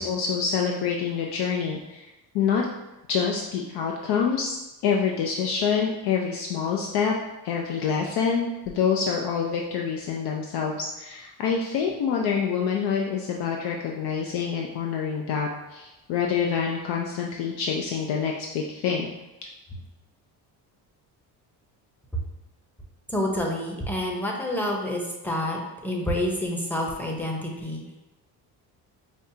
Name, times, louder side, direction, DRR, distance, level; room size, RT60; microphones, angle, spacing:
voice 1, 0.0-2.1 2.3-2.7 3.1-7.1 7.4-19.1, left 6 dB, 75° left, 0 dB, 0.5 m, -26 dB
voice 2, 23.1-28.0, left 1 dB, 5° left, -1 dB, 0.7 m, -28 dB
5.3 x 2.4 x 2.7 m, 1.0 s
cardioid pair, 115°, 40 cm